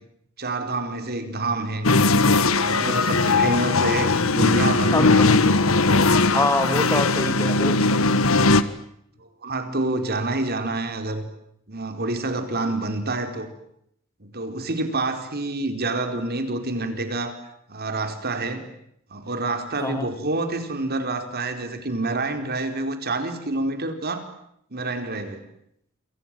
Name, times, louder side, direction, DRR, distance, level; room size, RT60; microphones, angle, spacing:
voice 1, 0.4-1.9 2.5-5.9 6.7-6.8 9.2-11.2 11.7-13.5 14.2-17.4 17.7-18.7 19.1-24.3 24.7-25.4, right 2 dB, 50° right, 8 dB, 4.4 m, -28 dB
sound 1, 1.8-8.6, left 3 dB, 75° left, 1.7 m, -19 dB
voice 2, 4.9-5.4 6.3-7.8 19.8-20.1, left 2 dB, 15° left, 9 dB, 2.7 m, -25 dB
28.5 x 27.0 x 7.7 m, 0.73 s
head